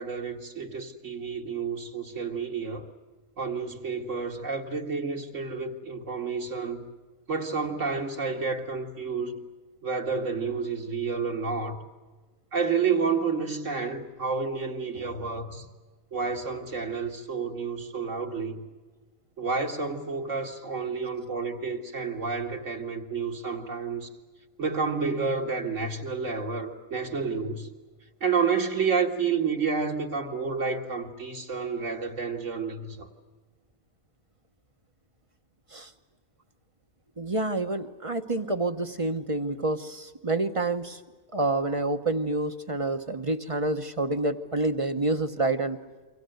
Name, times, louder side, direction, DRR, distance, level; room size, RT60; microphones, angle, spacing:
voice 1, 0.0-2.9 3.4-6.9 7.3-9.4 9.8-11.8 12.5-15.7 16.1-18.6 19.4-24.1 24.6-27.7 28.2-33.1, right 5 dB, 65° right, 2.4 m, -30 dB
voice 2, 37.2-41.0 41.3-45.8, right 2 dB, 25° right, 1.0 m, -28 dB
28.0 x 24.5 x 8.0 m
omnidirectional pair, 1.4 m